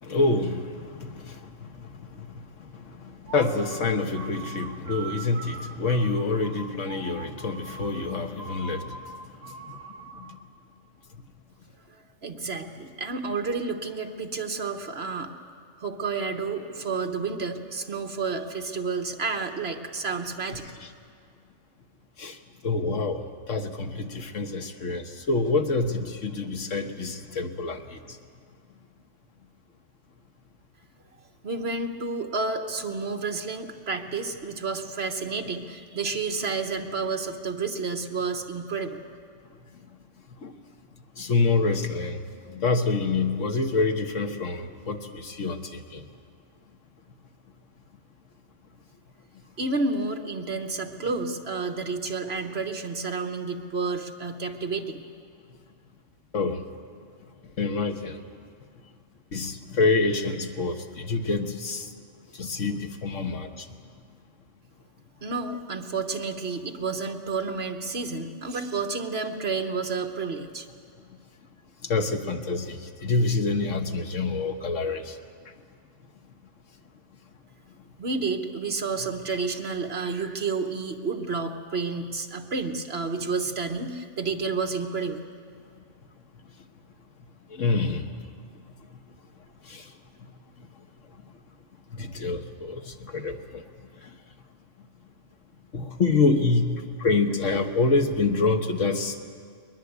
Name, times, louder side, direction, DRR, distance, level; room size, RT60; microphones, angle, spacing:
voice 1, 0.0-9.8 10.1-10.4 20.8-20.9 22.2-22.4 22.6-28.2 40.4-40.6 41.2-46.0 56.3-56.6 57.6-58.2 59.3-61.9 62.3-63.7 71.8-75.2 87.5-88.2 88.8-88.9 89.6-89.9 90.2-90.3 90.6-90.7 91.9-93.6 94.0-94.1 95.7-99.2, left 3 dB, 75° left, 5 dB, 1.6 m, -27 dB
sound 1, 3.2-10.5, right 4 dB, 40° right, 0.9 m, -42 dB
voice 2, 11.9-15.3 15.8-20.6 31.4-39.0 49.6-55.0 65.2-70.7 78.0-85.2, right 4 dB, 55° right, 5 dB, 1.5 m, -30 dB
21.5 x 21.0 x 8.2 m, 2.2 s
omnidirectional pair, 1.3 m